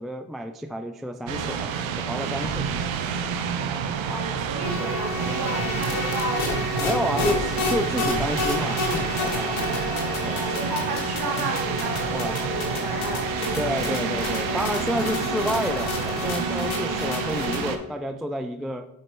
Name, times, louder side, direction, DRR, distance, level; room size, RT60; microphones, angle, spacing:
voice 1, 0.0-2.8 4.8-5.0 6.8-9.8 10.2-10.4 12.1-12.4 13.6-18.9, equal, ahead, 7 dB, 0.3 m, -30 dB
sound 1, 1.3-17.8, right 7 dB, 75° right, 0.7 m, -29 dB
sound 2, 2.4-13.6, left 2 dB, 35° left, 1.4 m, -41 dB
voice 2, 4.1-7.5 9.4-14.6 16.6-17.0, right 2 dB, 50° right, -2 dB, 2.4 m, -33 dB
sound 3, 4.6-17.7, left 3 dB, 85° left, 1.2 m, -30 dB
7.3 x 5.0 x 3.1 m, 0.91 s
supercardioid pair, 40°, 47 cm